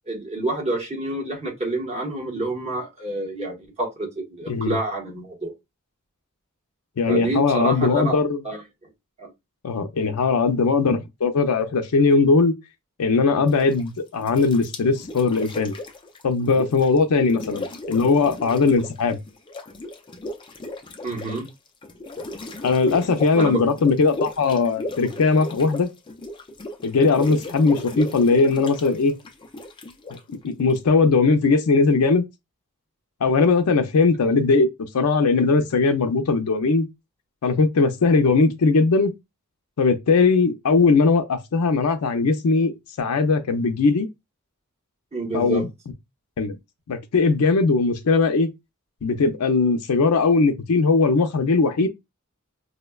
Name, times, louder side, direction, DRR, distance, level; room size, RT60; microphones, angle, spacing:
voice 1, 0.1-5.5 7.1-8.2 8.4-8.6 9.2-9.3 17.2-17.4 21.0-21.5 23.3-23.6 45.1-45.6, right 2 dB, 30° right, 1.1 m, -28 dB
voice 2, 7.0-8.4 9.6-12.5 13.0-15.7 16.2-19.2 22.6-25.9 26.8-29.1 30.3-32.2 33.2-34.7 34.9-36.9 37.4-39.1 39.8-44.1 45.3-45.7 46.4-46.6 46.9-48.5 49.0-51.9, left 4 dB, 85° left, 0.5 m, -19 dB
sound 1, 13.5-13.9 14.2-17.0 17.2-19.0 19.3-30.8, left 1 dB, 20° left, 0.4 m, -35 dB
4.9 x 2.1 x 2.2 m
head